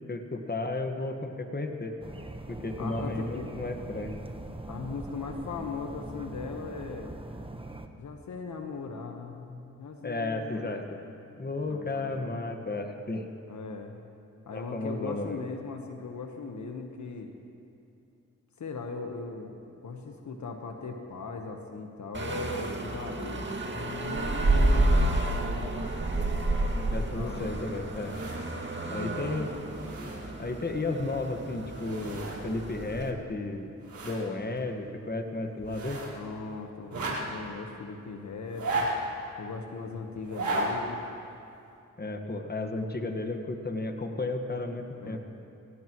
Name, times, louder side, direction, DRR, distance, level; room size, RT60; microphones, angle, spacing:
voice 1, 0.1-2.0 2.5-4.1 10.0-11.0 11.4-13.3 14.5-15.4 26.9-28.2 28.9-29.5 30.4-33.7 34.0-36.0 42.0-45.2, left 2 dB, 30° left, 5 dB, 1.6 m, -33 dB
sound 1, 2.0-7.9, right 2 dB, 15° right, 1.2 m, -42 dB
voice 2, 2.8-3.5 4.7-7.1 8.0-10.8 11.7-12.4 13.5-14.0 14.5-17.3 18.6-19.6 19.8-25.9 27.1-27.6 29.1-29.6 36.1-37.0 37.3-38.9 39.4-41.0 45.0-45.2, left 4 dB, 65° left, 3 dB, 1.3 m, -39 dB
sound 2, 22.1-33.1, right 2 dB, 35° right, 2.1 m, -30 dB
sound 3, 27.9-28.6 29.1-29.2 29.5-30.5 31.5-32.4 32.7-32.8 33.3-34.2 34.6-34.7 35.6-36.2 36.8-37.5 38.4-39.2 40.2-40.7 41.1-41.2, right 2 dB, 70° right, 4.3 m, -34 dB
23.5 x 17.0 x 3.1 m, 2.6 s
cardioid pair, 50°, 31 cm